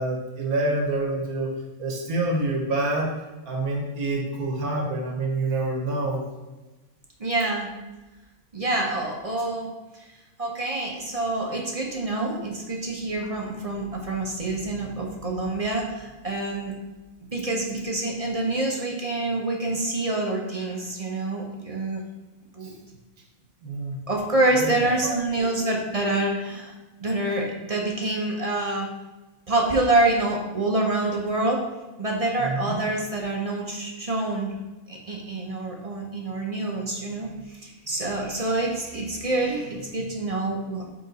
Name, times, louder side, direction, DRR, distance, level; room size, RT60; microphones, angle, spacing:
voice 1, 0.0-1.5 1.8-3.1 3.5-6.2 22.6-22.7 23.6-24.0 24.5-24.7 25.4-25.6 32.4-32.7, right 2 dB, 85° right, 0 dB, 1.4 m, -27 dB
voice 2, 7.2-7.7 8.5-9.7 9.9-10.1 10.4-16.7 17.3-22.0 22.5-22.7 24.1-26.7 27.0-28.9 29.5-31.6 32.0-34.5 34.9-40.9, right 2 dB, 35° right, 0 dB, 0.6 m, -26 dB
5.0 x 4.7 x 4.0 m, 1.1 s
omnidirectional pair, 1.5 m